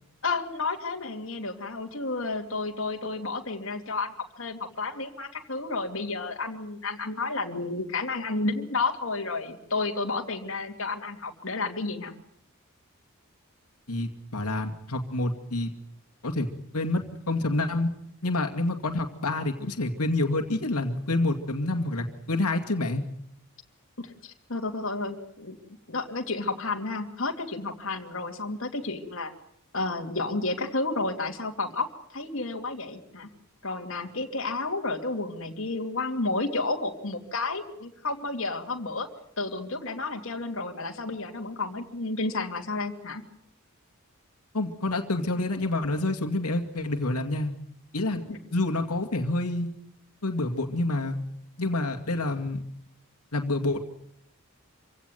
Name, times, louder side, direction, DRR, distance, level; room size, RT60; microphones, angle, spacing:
voice 1, 0.2-12.1 24.0-25.6 25.9-29.3 29.7-33.3 33.6-39.1 39.4-43.2 48.3-48.4, left 3 dB, 60° left, 3 dB, 2.7 m, -31 dB
voice 2, 13.9-15.7 16.2-16.5 16.7-17.9 18.2-23.0 44.5-47.5 47.9-48.2 48.5-49.7 50.2-51.2 51.6-52.6 53.3-53.8, left 2 dB, 90° left, 4 dB, 2.3 m, -28 dB
26.5 x 17.0 x 9.4 m, 0.71 s
head